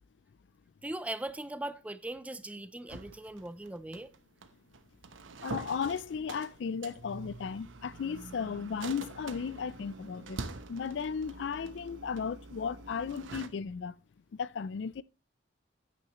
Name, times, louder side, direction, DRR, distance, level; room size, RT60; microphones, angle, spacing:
voice 1, 0.8-4.1, right 1 dB, 5° right, 0.4 m, -39 dB
sound 1, 2.9-13.5, right 3 dB, 90° right, 0.9 m, -45 dB
voice 2, 5.4-10.4 10.7-13.9 14.3-15.0, left 6 dB, 65° left, 0.4 m, -35 dB
9.3 x 9.1 x 3.0 m
head